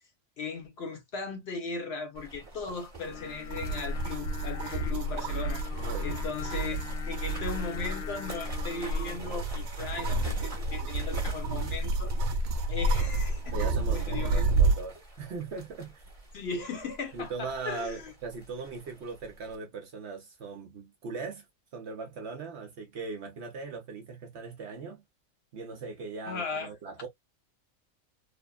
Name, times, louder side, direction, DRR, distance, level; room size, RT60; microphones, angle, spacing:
voice 1, 0.4-12.1 12.7-14.5 16.3-18.1 26.3-26.7, left 4 dB, 55° left, 0.9 m, -38 dB
sound 1, 2.1-19.6, right 2 dB, 15° right, 0.9 m, -48 dB
Singing, 3.0-9.2, left 8 dB, 85° left, 1.1 m, -43 dB
sound 2, 3.5-14.9, right 2 dB, 90° right, 1.1 m, -30 dB
voice 2, 5.8-6.2 13.5-16.0 17.1-21.5 21.7-25.0 25.5-27.1, right 4 dB, 60° right, 0.9 m, -39 dB
3.3 x 2.0 x 2.2 m
omnidirectional pair, 1.4 m